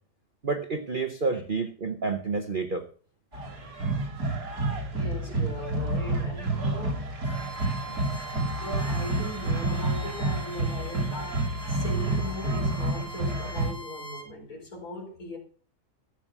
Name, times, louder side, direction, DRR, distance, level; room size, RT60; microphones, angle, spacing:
voice 1, 0.4-2.9, right 4 dB, 35° right, 5 dB, 0.9 m, -29 dB
sound 1, 3.3-13.7, right 2 dB, 60° right, 3.7 m, -29 dB
voice 2, 4.9-7.0 8.3-15.4, left 1 dB, 55° left, 0 dB, 4.6 m, -39 dB
Bowed string instrument, 7.2-14.3, right 1 dB, 20° right, 2.2 m, -42 dB
13.5 x 7.1 x 6.1 m, 0.42 s
omnidirectional pair, 1.8 m